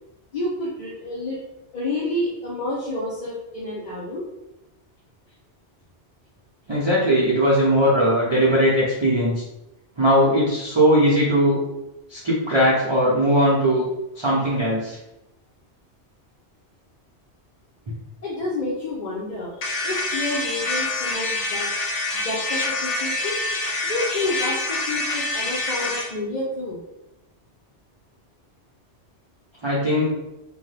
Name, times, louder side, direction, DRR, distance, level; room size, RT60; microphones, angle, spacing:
voice 1, 0.3-1.4 1.7-4.2 18.2-21.7 22.1-23.4 23.8-26.8, left 2 dB, 50° left, -5 dB, 0.6 m, -29 dB
voice 2, 6.7-9.4 10.0-11.6 12.1-13.9 14.2-15.0 29.6-30.1, equal, 35° right, -7 dB, 0.4 m, -19 dB
sound 1, 19.6-26.1, left 2 dB, 80° left, 1.0 m, -26 dB
2.6 x 2.2 x 3.2 m, 0.92 s
omnidirectional pair, 1.2 m